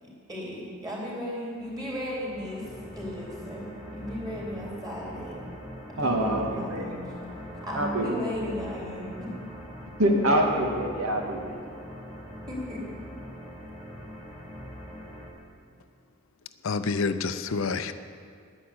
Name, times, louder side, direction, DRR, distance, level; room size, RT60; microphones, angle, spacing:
voice 1, 0.0-2.7 2.9-5.4 5.9-7.0 7.6-9.0 12.5-12.8, left 1 dB, 20° right, -4 dB, 3.5 m, -35 dB
sound 1, 1.6-15.3, equal, ahead, 1.8 m, -42 dB
voice 2, 6.0-6.8 7.7-8.2 10.0-11.6, right 1 dB, 80° right, 1 dB, 1.8 m, -25 dB
voice 3, 16.6-17.9, left 4 dB, 70° left, 11 dB, 0.6 m, -28 dB
10.5 x 10.0 x 8.0 m, 2.2 s
head